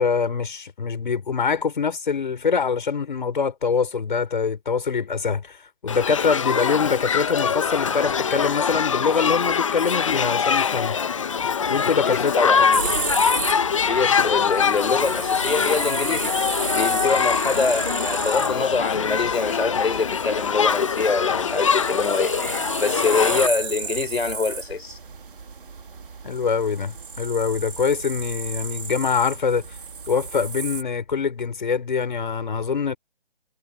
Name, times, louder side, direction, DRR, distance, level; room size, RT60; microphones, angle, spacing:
voice 1, 0.0-5.6 5.8-11.0 11.7-12.7 26.2-29.6 30.1-33.0, left 5 dB, 55° left, 5.4 m, -24 dB
Shout / Human group actions, 5.9-23.5, left 6 dB, 30° left, 1.0 m, -23 dB
voice 2, 11.8-12.9 13.9-16.3 16.7-25.0, left 4 dB, 85° left, 3.7 m, -25 dB
sound 1, 12.7-30.8, right 5 dB, 60° right, 2.9 m, -33 dB
hypercardioid pair, 170°, 30 cm